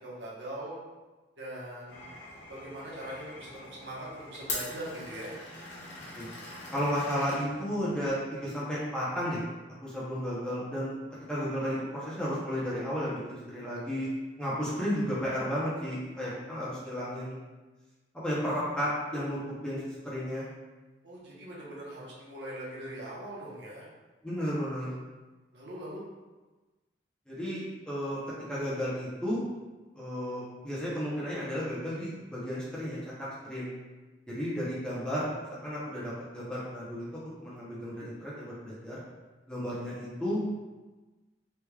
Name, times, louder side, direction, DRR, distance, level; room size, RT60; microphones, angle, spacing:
voice 1, 0.0-0.8 1.4-2.1 2.5-5.3 21.0-23.9 25.5-26.0, right 1 dB, 80° right, -6 dB, 0.9 m, -41 dB
Glass, 1.9-8.1, left 2 dB, 75° left, 0.7 m, -43 dB
voice 2, 6.7-9.4 9.8-10.9 11.3-14.1 14.4-17.4 18.1-20.4 24.2-24.9 27.3-28.2 28.5-29.4 30.0-33.7 34.3-35.3 35.6-37.1 37.4-39.0 39.5-40.6, equal, 5° left, -9 dB, 0.7 m, -33 dB
3.2 x 3.0 x 2.3 m, 1.2 s
head